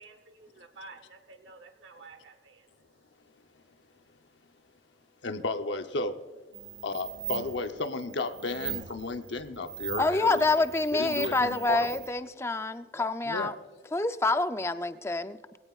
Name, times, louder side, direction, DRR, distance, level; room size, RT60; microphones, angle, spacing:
voice 1, 0.0-2.8, right 3 dB, 85° right, 6 dB, 1.1 m, -51 dB
voice 2, 5.2-6.2 6.8-10.4 10.9-11.9 13.3-13.5, left 2 dB, 85° left, 7 dB, 0.9 m, -33 dB
sound 1, 6.5-12.1, right 10 dB, 55° right, 2.2 m, -40 dB
voice 3, 10.0-13.6 13.9-15.6, left 2 dB, 15° left, 10 dB, 0.5 m, -27 dB
22.0 x 17.0 x 2.5 m, 1.5 s
head